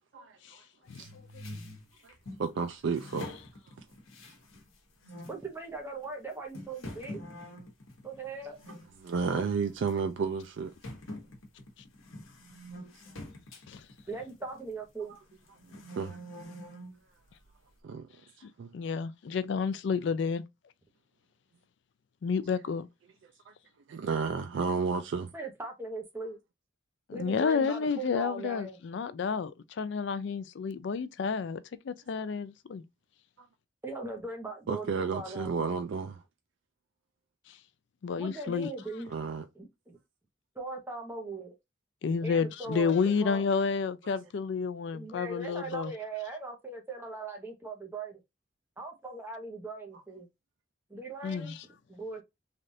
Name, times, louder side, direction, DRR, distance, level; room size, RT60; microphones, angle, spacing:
voice 1, 0.1-0.6 1.0-1.1 2.0-2.1 2.4-3.3 9.0-10.7 16.0-16.2 17.8-18.1 18.6-18.7 23.5-23.6 23.9-25.3 34.7-36.2 39.1-39.4 44.0-44.1, right 5 dB, 60° right, 0.3 m, -32 dB
sound 1, 0.9-2.4 2.9-4.7 5.0-5.4 6.0-6.1 6.5-8.9 9.2-9.5 9.9-10.0 10.8-14.8 15.3-17.0, left 1 dB, 80° left, 1.0 m, -45 dB
voice 2, 5.3-7.2 8.0-8.6 14.1-15.1 25.3-26.4 27.1-28.8 33.8-35.6 38.2-39.1 39.5-40.0 40.5-41.5 42.2-43.4 44.9-48.2 48.8-50.3 50.9-51.5 51.9-52.2, right 3 dB, 10° right, 0.8 m, -39 dB
voice 3, 18.4-20.4 22.2-22.9 27.1-32.8 38.0-38.7 42.0-45.9 51.2-51.6, left 5 dB, 60° left, 0.3 m, -30 dB
3.3 x 2.4 x 2.6 m
head